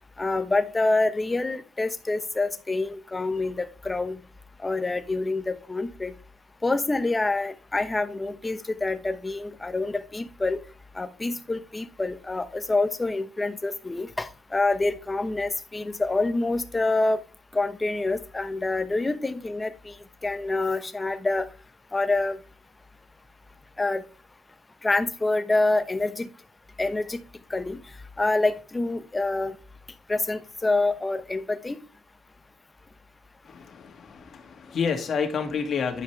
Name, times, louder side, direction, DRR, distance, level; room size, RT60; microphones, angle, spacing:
voice 1, 0.2-4.2 4.6-6.1 6.6-10.6 10.9-17.2 17.5-19.9 20.2-21.5 21.9-22.4 23.8-24.0 24.8-26.3 26.8-27.2 27.5-27.8 28.2-29.5 30.1-31.8, left 2 dB, 20° left, 10 dB, 1.0 m, -26 dB
voice 2, 33.4-36.0, left 6 dB, 55° left, 3 dB, 2.1 m, -29 dB
10.0 x 5.4 x 3.3 m, 0.35 s
cardioid pair, 90°, 0 cm